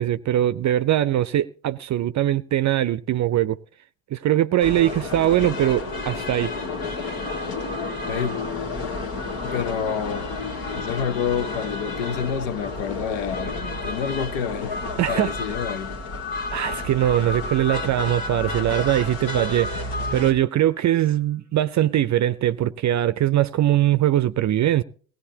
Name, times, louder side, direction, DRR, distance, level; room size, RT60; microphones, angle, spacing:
voice 1, 0.0-3.6 4.1-6.5 7.0-7.1 15.0-15.3 16.5-24.8, right 12 dB, 45° right, 0.5 m, -21 dB
sound 1, 4.6-20.3, left 2 dB, 60° left, 2.0 m, -31 dB
voice 2, 9.4-10.3 10.8-13.6 13.8-14.8 15.1-16.0, left 7 dB, 90° left, 0.8 m, -28 dB
sound 2, 14.7-20.8, left 9 dB, 35° left, 0.7 m, -38 dB
17.5 x 17.0 x 2.8 m
hypercardioid pair, 55°, 40 cm